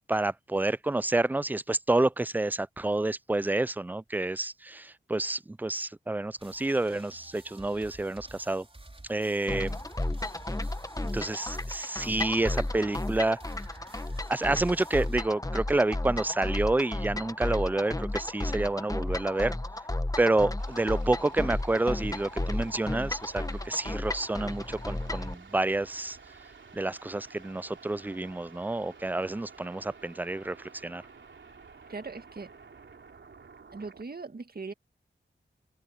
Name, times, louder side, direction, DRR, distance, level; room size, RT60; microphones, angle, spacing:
voice 1, 0.1-8.7 9.1-9.8 11.1-13.4 13.9-14.0 14.3-19.6 20.2-26.2 26.7-31.0, right 2 dB, 10° right, 0.3 m, -29 dB
sound 1, 6.4-15.2, right 2 dB, 30° right, 5.0 m, -51 dB
sound 2, 9.5-25.3, left 1 dB, 15° left, 1.4 m, -33 dB
sound 3, 20.6-34.1, right 5 dB, 70° right, 3.3 m, -52 dB
voice 2, 31.9-32.5 33.7-34.7, right 4 dB, 50° right, 2.0 m, -39 dB
cardioid pair, 50°, 20 cm